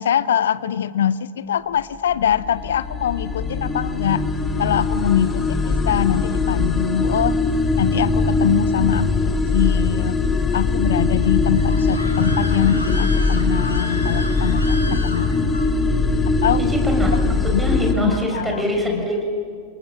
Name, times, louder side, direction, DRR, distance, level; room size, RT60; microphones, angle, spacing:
voice 1, 0.0-4.2 4.6-7.4 7.8-10.2 10.5-15.7 16.3-16.6 17.5-18.6 18.9-19.1, left 9 dB, 65° left, 18 dB, 0.7 m, -23 dB
sound 1, 2.0-17.9, left 3 dB, 15° left, 2.4 m, -21 dB
Screaming, 11.2-15.7, left 2 dB, 85° left, 2.1 m, -33 dB
voice 2, 16.7-17.2 17.6-19.2, equal, 10° right, 1 dB, 6.1 m, -24 dB
29.0 x 22.0 x 6.1 m, 2.2 s
figure-of-eight pair, 90°, 0 cm